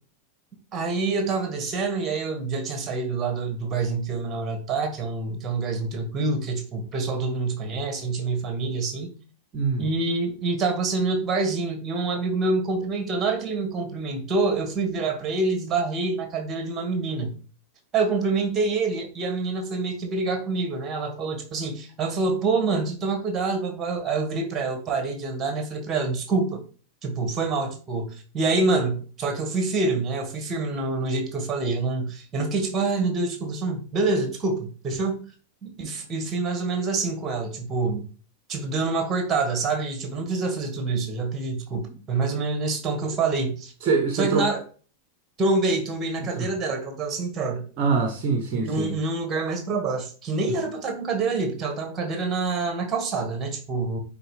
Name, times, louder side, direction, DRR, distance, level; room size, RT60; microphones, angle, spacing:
voice 1, 0.7-9.2 9.8-17.3 17.9-26.6 27.0-35.3 35.6-38.1 38.5-43.7 44.1-44.6 45.4-47.6 48.5-54.0, right 3 dB, 25° right, 1.8 m, -26 dB
voice 2, 9.5-9.8 43.8-44.5 46.4-46.5 47.8-49.0, right 4 dB, 40° right, 1.0 m, -24 dB
8.9 x 3.7 x 3.3 m
figure-of-eight pair, 90°, 0 cm